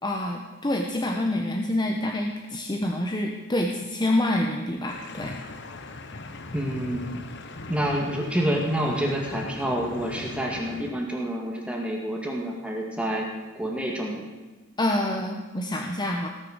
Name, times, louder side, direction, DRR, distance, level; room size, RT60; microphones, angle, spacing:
voice 1, 0.0-5.4 14.8-16.3, left 1 dB, 20° left, 1 dB, 0.9 m, -27 dB
sound 1, 4.9-10.9, left 2 dB, 60° left, 1.0 m, -39 dB
voice 2, 6.5-7.1 7.7-13.3 13.6-14.3, right 1 dB, 5° right, -1 dB, 1.9 m, -28 dB
18.5 x 6.6 x 6.5 m, 1.2 s
head